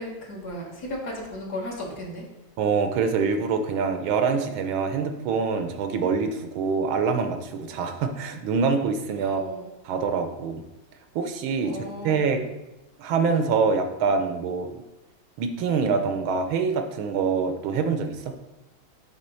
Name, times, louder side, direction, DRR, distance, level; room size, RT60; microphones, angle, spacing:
voice 1, 0.0-2.2 9.2-9.7 11.6-12.2, left 1 dB, 55° left, -2 dB, 1.9 m, -35 dB
voice 2, 2.6-9.4 9.8-10.6 11.1-11.8 12.0-12.4 13.0-14.8 15.4-18.3, right 5 dB, 90° right, 7 dB, 1.6 m, -25 dB
7.3 x 3.7 x 5.4 m, 0.99 s
omnidirectional pair, 2.2 m